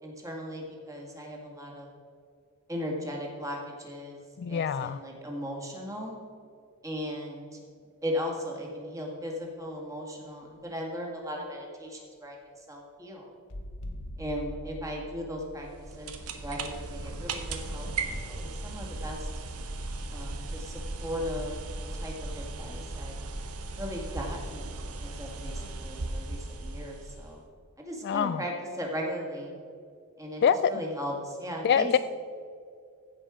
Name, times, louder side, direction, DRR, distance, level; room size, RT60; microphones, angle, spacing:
voice 1, 0.0-1.9 2.7-4.2 4.5-6.2 6.8-7.6 8.0-13.2 14.2-15.7 16.0-16.1 16.4-19.3 20.1-21.6 22.0-23.2 23.8-27.4 27.8-29.5 30.2-30.4 30.7-31.9, equal, 15° right, -1 dB, 2.0 m, -37 dB
voice 2, 4.4-5.0 28.0-28.4 30.4-30.8 31.6-32.0, left 7 dB, 50° left, 14 dB, 0.3 m, -25 dB
sound 1, 13.5-18.1 19.8-19.9, equal, 75° left, 1.1 m, -44 dB
sound 2, 15.6-27.4, right 2 dB, 80° right, 1.1 m, -37 dB
15.5 x 5.6 x 5.0 m, 2.3 s
head